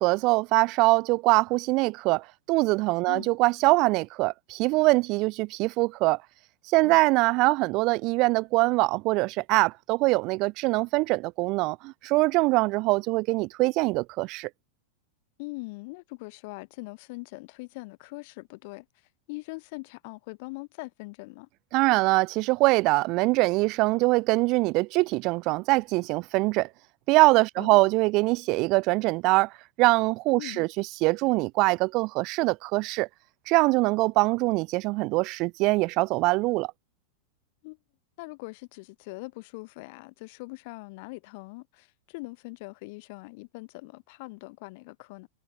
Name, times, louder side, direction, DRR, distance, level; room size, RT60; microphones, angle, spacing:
voice 1, 0.0-6.2 6.7-14.5 21.7-26.7 27.1-29.5 29.8-33.1 33.5-36.7, right 23 dB, 40° right, 0.6 m, -23 dB
voice 2, 15.4-18.9 19.3-21.5 27.6-27.8 30.4-30.7 37.6-37.8 38.2-45.3, left 27 dB, 50° left, 6.5 m, -41 dB
figure-of-eight pair, 90°, 0 cm